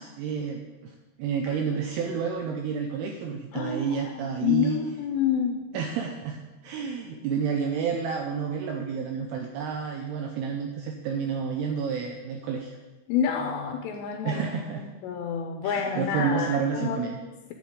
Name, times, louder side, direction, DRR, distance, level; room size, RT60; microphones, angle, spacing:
voice 1, 0.0-4.8 5.7-12.8 14.2-14.9 15.6-17.2, right 6 dB, 85° right, 3 dB, 2.4 m, -30 dB
voice 2, 3.5-4.1 4.4-5.7 13.1-17.5, left 7 dB, 80° left, 4 dB, 2.7 m, -29 dB
12.0 x 7.6 x 3.7 m, 1.1 s
omnidirectional pair, 5.2 m